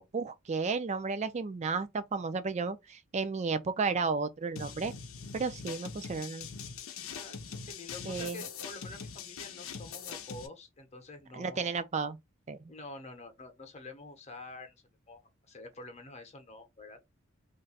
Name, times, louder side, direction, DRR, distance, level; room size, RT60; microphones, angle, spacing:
voice 1, 0.0-4.9 5.3-6.5 8.1-8.4 11.3-12.2 12.5-12.6, right 4 dB, 35° right, 0.4 m, -33 dB
sound 1, 4.6-10.5, left 6 dB, 80° left, 0.6 m, -42 dB
voice 2, 7.6-11.7 12.7-14.8 15.1-17.0, left 2 dB, 35° left, 0.8 m, -47 dB
2.5 x 2.2 x 3.9 m
head